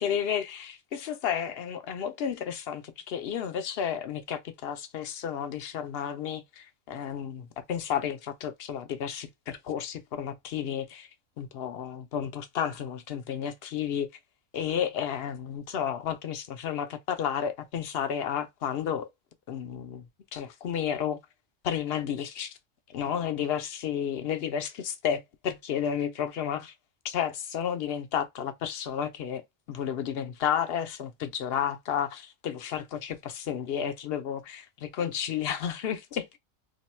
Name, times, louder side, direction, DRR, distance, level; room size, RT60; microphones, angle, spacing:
voice 1, 0.0-11.1 11.4-14.1 14.5-19.1 19.5-20.0 20.3-21.2 21.6-22.6 22.9-26.7 27.0-29.4 29.7-36.4, left 8 dB, 60° left, 0.7 m, -32 dB
2.8 x 2.2 x 4.1 m
omnidirectional pair, 1.4 m